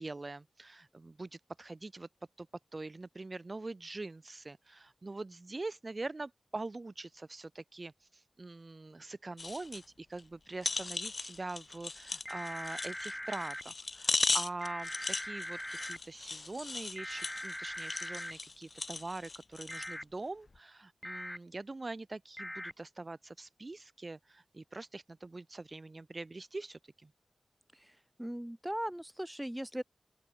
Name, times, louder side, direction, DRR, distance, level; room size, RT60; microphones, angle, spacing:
voice 1, 0.0-2.1 2.4-2.5 2.7-27.1, right 2 dB, 40° right, 2.3 m, -43 dB
sound 1, 9.4-9.8 10.2-10.3 10.6-19.9 20.5-20.6, left 3 dB, 50° left, 0.8 m, -37 dB
sound 2, 12.3-13.6 14.6-16.0 17.0-18.3 19.7-20.0 21.0-21.4 22.4-22.7, left 1 dB, 10° left, 0.8 m, -41 dB
voice 2, 27.7-29.8, equal, 10° right, 3.6 m, -39 dB
open air
wide cardioid pair, 65°, 0 cm